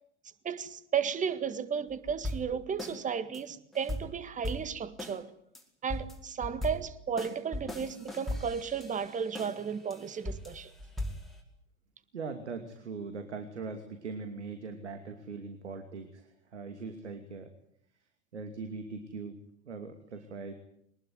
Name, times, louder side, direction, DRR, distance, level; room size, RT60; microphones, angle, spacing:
voice 1, 0.4-5.3 5.8-10.7, right 7 dB, 20° right, 1.8 m, -34 dB
sound 1, 1.9-3.0 3.3-3.4 3.7-5.2 5.5-5.6 5.9-9.6 9.9-11.4, left 1 dB, ahead, 4.9 m, -38 dB
voice 2, 12.1-17.5 18.3-19.4 19.7-20.5, right 4 dB, 75° right, 2.7 m, -41 dB
23.0 x 20.5 x 9.4 m
figure-of-eight pair, 80°, 35 cm